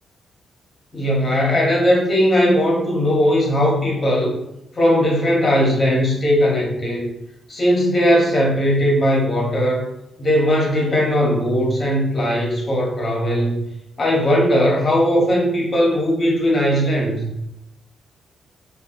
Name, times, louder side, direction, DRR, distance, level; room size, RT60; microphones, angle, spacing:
voice 1, 0.9-4.3 4.7-7.1 7.5-9.9 10.2-13.6 14.0-17.3, equal, 25° left, -2 dB, 0.9 m, -18 dB
2.2 x 2.1 x 3.8 m, 0.85 s
cardioid pair, 130°, 0 cm